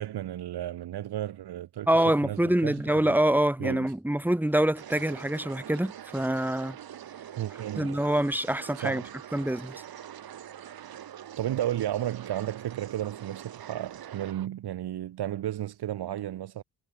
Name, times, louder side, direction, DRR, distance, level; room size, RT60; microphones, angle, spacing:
voice 1, 0.0-1.9 2.2-3.1 3.6-3.9 7.4-8.0 8.7-9.1 11.4-16.6, right 12 dB, 85° right, 2.5 m, -33 dB
voice 2, 1.9-6.8 7.8-9.0 9.3-9.8, right 1 dB, 5° right, 4.3 m, -25 dB
sound 1, 4.8-14.5, right 10 dB, 65° right, 3.4 m, -44 dB
wide cardioid pair, 150°, 38 cm